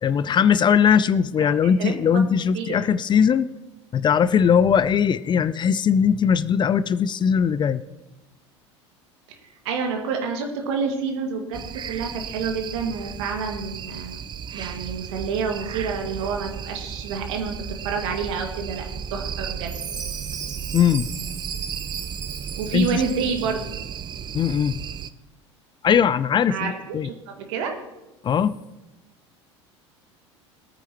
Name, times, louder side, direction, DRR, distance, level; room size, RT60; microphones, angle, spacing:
voice 1, 0.0-3.5 3.9-7.8 20.7-21.1 22.7-23.0 24.3-24.8 25.8-27.1 28.2-28.6, left 7 dB, 30° left, 16 dB, 0.5 m, -20 dB
voice 2, 1.4-2.3 2.5-2.8 9.6-14.2 14.5-19.8 22.6-23.6 26.5-27.7, right 5 dB, 65° right, 3 dB, 2.1 m, -28 dB
sound 1, 11.5-25.1, right 7 dB, 30° right, 0.5 m, -34 dB
Chime, 19.7-23.7, right 6 dB, 90° right, 0.8 m, -37 dB
21.5 x 9.3 x 3.0 m, 1.0 s
hypercardioid pair, 75°, 15 cm